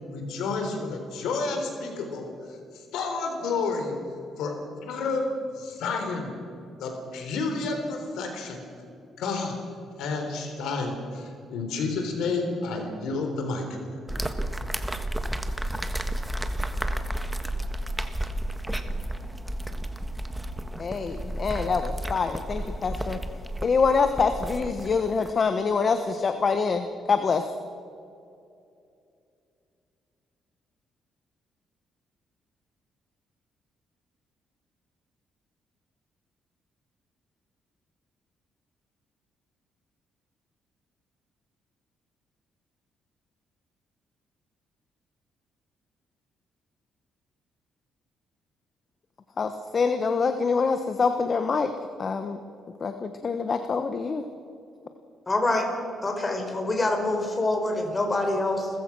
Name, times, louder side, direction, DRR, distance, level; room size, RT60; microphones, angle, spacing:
voice 1, 0.1-2.6 2.9-4.0 4.4-4.5 4.8-5.3 5.6-6.3 6.8-8.6 9.2-9.6 10.0-13.6, left 4 dB, 85° left, 4 dB, 3.9 m, -30 dB
sound 1, 14.1-25.3, right 1 dB, 5° right, 1.5 m, -32 dB
voice 2, 20.8-23.2 23.6-27.4 49.4-51.7 52.0-52.4 52.8-54.3, left 5 dB, 45° left, 8 dB, 1.2 m, -25 dB
voice 3, 55.3-55.7 56.0-58.7, left 2 dB, 25° left, 4 dB, 4.5 m, -25 dB
29.0 x 15.0 x 6.2 m, 2.6 s
cardioid pair, 90°, 0 cm